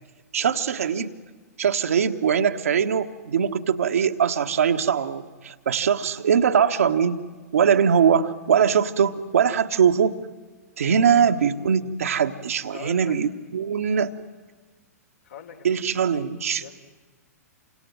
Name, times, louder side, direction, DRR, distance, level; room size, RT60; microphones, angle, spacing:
voice 1, 0.3-1.1 1.6-7.2 7.5-10.2 10.8-14.1 15.6-16.6, right 7 dB, 60° right, 6 dB, 1.5 m, -21 dB
voice 2, 12.7-13.2 15.2-15.9 16.6-16.8, left 8 dB, 60° left, 3 dB, 3.4 m, -42 dB
29.0 x 25.5 x 7.8 m, 1.4 s
figure-of-eight pair, 110°, 9 cm